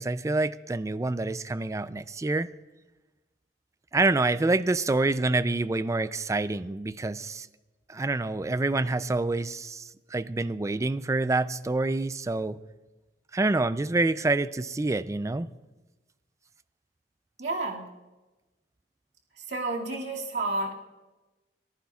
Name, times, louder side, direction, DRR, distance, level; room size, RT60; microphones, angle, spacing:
voice 1, 0.0-2.5 3.9-7.5 7.9-12.6 13.3-15.5, right 2 dB, 15° right, 15 dB, 0.3 m, -27 dB
voice 2, 17.4-17.9 19.4-20.7, right 2 dB, 80° right, -2 dB, 2.2 m, -31 dB
23.5 x 14.5 x 2.4 m, 1.1 s
head